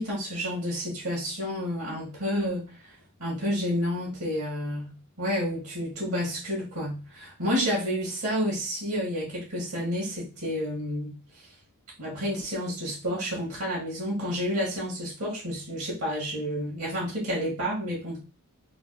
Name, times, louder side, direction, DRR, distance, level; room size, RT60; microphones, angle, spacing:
voice 1, 0.0-2.9 3.2-11.2 12.0-18.2, equal, 70° right, -4 dB, 1.8 m, -30 dB
3.9 x 2.3 x 4.1 m, 0.31 s
head